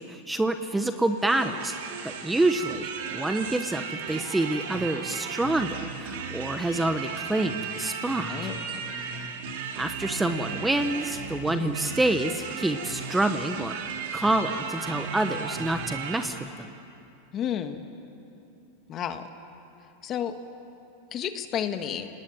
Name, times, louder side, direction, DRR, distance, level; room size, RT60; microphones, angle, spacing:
voice 1, 0.0-1.7 2.0-8.3 9.7-13.8 14.1-16.7, right 2 dB, 5° right, 8 dB, 1.0 m, -27 dB
sound 1, 0.7-16.3, right 6 dB, 75° right, 3.3 m, -35 dB
voice 2, 8.3-9.1 17.3-17.8 18.9-19.3 20.0-20.4 21.1-22.1, left 9 dB, 35° left, 8 dB, 1.6 m, -32 dB
29.0 x 19.0 x 9.0 m, 2.7 s
supercardioid pair, 130°, 0 cm